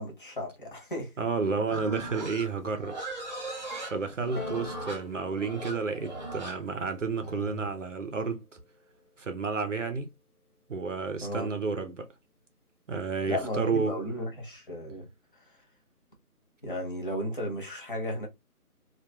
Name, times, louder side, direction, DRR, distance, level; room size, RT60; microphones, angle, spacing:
voice 1, 0.0-1.2 11.2-11.5 13.2-15.1 15.3-15.6 16.6-18.3, equal, 35° left, 0.7 m, -34 dB
voice 2, 1.2-3.0 3.8-8.4 9.2-10.1 10.7-12.1 12.9-14.0, right 4 dB, 60° right, 0.5 m, -31 dB
Livestock farm animals working animals, 1.7-7.7, right 2 dB, 30° right, 0.9 m, -39 dB
Piano, 4.4-9.5 10.4-10.5, left 4 dB, 75° left, 1.1 m, -47 dB
2.8 x 2.2 x 2.2 m
figure-of-eight pair, 160°, 45 cm